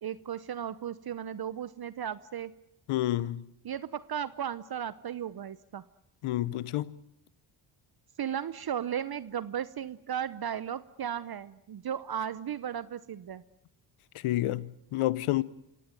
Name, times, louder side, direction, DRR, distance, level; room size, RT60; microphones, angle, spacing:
voice 1, 0.0-2.5 3.6-5.8 8.2-13.4, right 9 dB, 50° right, 0.9 m, -35 dB
voice 2, 2.9-3.4 6.2-6.9 14.2-15.4, left 15 dB, 85° left, 1.0 m, -29 dB
25.0 x 17.5 x 9.3 m
cardioid pair, 75°, 50 cm